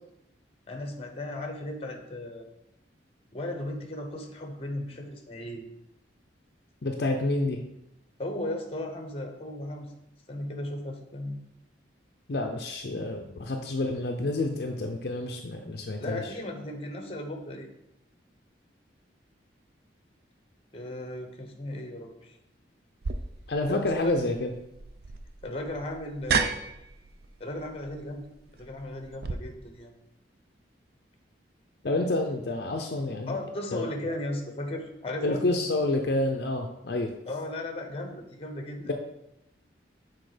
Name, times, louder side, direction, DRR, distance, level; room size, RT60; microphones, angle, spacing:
voice 1, 0.7-2.5 3.3-5.6 8.2-9.9 10.3-11.4 16.0-17.7 20.7-22.3 23.7-24.1 25.4-26.5 27.4-28.3 28.6-29.9 33.3-35.4 37.3-38.8, left 1 dB, 30° left, 4 dB, 0.9 m, -36 dB
voice 2, 6.8-7.6 12.3-16.2 23.5-24.5 31.8-33.4 33.7-34.1 35.2-37.1, left 2 dB, 55° left, 3 dB, 0.5 m, -29 dB
sound 1, 23.0-29.3, right 5 dB, 55° right, 0.5 m, -34 dB
6.4 x 4.2 x 4.9 m, 0.85 s
head